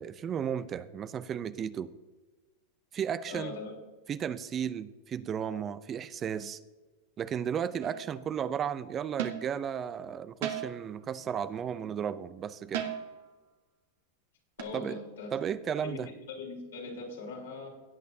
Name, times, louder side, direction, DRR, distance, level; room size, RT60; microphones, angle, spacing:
voice 1, 0.0-1.9 2.9-3.5 4.1-6.6 7.2-12.8 14.7-15.0 15.3-16.1, right 8 dB, 30° right, 15 dB, 0.5 m, -34 dB
voice 2, 3.3-3.8 14.6-15.3 15.8-17.7, left 4 dB, 85° left, -2 dB, 3.7 m, -41 dB
sound 1, 7.8-8.2 9.2-9.6 10.4-10.9 12.7-13.3 14.6-14.7, right 10 dB, 70° right, 1.3 m, -36 dB
17.0 x 8.4 x 2.8 m, 1.2 s
hypercardioid pair, 110°, 0 cm